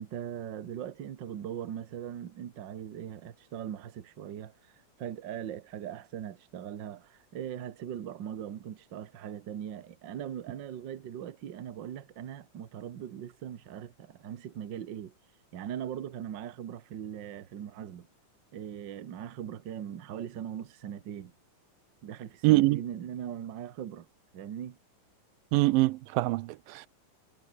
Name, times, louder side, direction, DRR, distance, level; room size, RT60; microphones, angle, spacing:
voice 1, 0.0-4.7 5.0-15.1 15.5-18.1 18.5-21.3 22.0-24.1 24.3-24.8, right 9 dB, 55° right, 1.3 m, -40 dB
voice 2, 22.4-22.8 25.5-26.9, right 19 dB, 90° right, 2.5 m, -24 dB
omnidirectional pair, 3.9 m